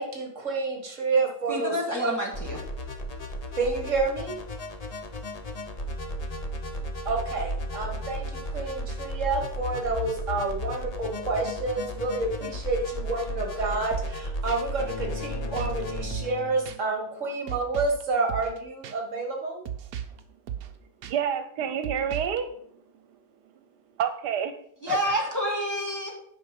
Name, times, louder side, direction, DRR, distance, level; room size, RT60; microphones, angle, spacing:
voice 1, 0.0-2.1 3.5-4.4 7.1-8.3 8.5-19.6, right 3 dB, 50° right, 2 dB, 2.1 m, -29 dB
voice 2, 1.5-2.6 24.8-26.1, equal, 10° left, -2 dB, 1.8 m, -28 dB
sound 1, 2.3-16.0, equal, 30° left, 0.7 m, -34 dB
sound 2, 13.9-14.2 14.5-14.6 15.6-15.8 16.1-16.4 16.7-16.8 17.5-18.0 18.3-18.6 18.8-18.9 19.7-20.2 20.5-20.7 21.0-21.1 21.8-22.4, right 9 dB, 65° right, 1.1 m, -36 dB
sound 3, 14.8-17.3, left 8 dB, 70° left, 1.2 m, -40 dB
voice 3, 21.0-23.5 24.0-24.5 24.9-25.3, right 8 dB, 85° right, 9 dB, 1.4 m, -30 dB
9.6 x 5.4 x 5.3 m, 0.68 s
omnidirectional pair, 1.7 m